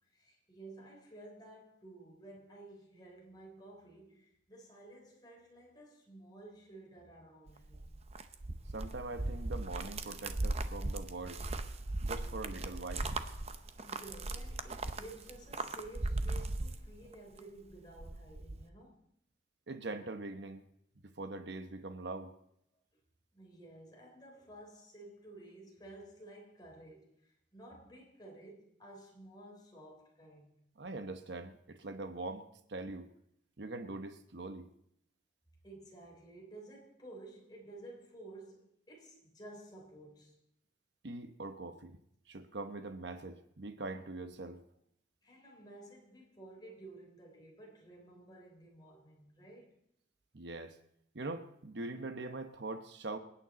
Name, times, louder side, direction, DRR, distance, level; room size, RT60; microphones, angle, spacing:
voice 1, 0.0-8.1 13.8-19.0 23.3-30.5 35.6-40.4 45.2-49.8, right 2 dB, 20° left, 3.3 m, -53 dB
sound 1, 7.5-17.4 17.7-18.6, right 2 dB, 35° right, 0.7 m, -38 dB
voice 2, 8.7-11.4 12.0-13.1 19.7-20.6 21.0-22.3 30.8-32.4 32.7-33.0 33.6-34.7 41.0-42.0 42.3-44.6 50.3-50.8 51.1-53.2, right 2 dB, 65° right, 0.9 m, -42 dB
26.5 x 9.1 x 4.1 m
head